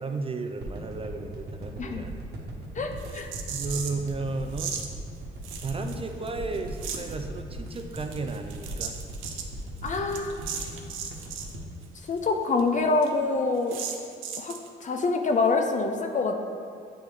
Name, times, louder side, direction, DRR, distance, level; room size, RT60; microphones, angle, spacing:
voice 1, 0.0-2.4 3.5-4.8 5.6-9.0, right 3 dB, 30° right, 5 dB, 0.4 m, -34 dB
sound 1, 0.6-12.9 13.3-13.4, right 1 dB, 55° right, 1.2 m, -39 dB
voice 2, 2.8-3.3 9.8-10.4 12.1-13.8 14.4-16.4, left 3 dB, 40° left, 4 dB, 0.6 m, -26 dB
sound 2, 3.0-4.1 4.5-4.9 5.4-6.3 6.5-7.1 7.7-11.5 11.8-11.9 12.2-12.3 12.6-12.7 13.0-13.1 13.7-14.7, right 7 dB, 85° right, 0.6 m, -37 dB
9.0 x 3.1 x 3.5 m, 2.4 s
cardioid pair, 90°, 20 cm